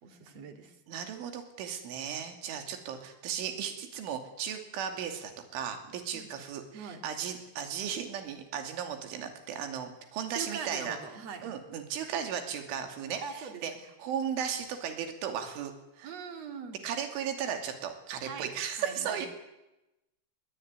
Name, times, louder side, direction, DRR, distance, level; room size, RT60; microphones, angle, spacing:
voice 1, 0.0-0.8 6.1-6.3 6.7-7.0 10.3-11.4 13.2-13.8 16.0-16.8 18.2-18.5 18.8-19.3, right 6 dB, 40° right, 5 dB, 2.9 m, -42 dB
voice 2, 0.9-11.0 11.4-13.7 14.0-16.1 16.8-19.3, right 8 dB, 80° right, 6 dB, 5.1 m, -36 dB
21.5 x 21.0 x 9.5 m, 0.96 s
omnidirectional pair, 5.5 m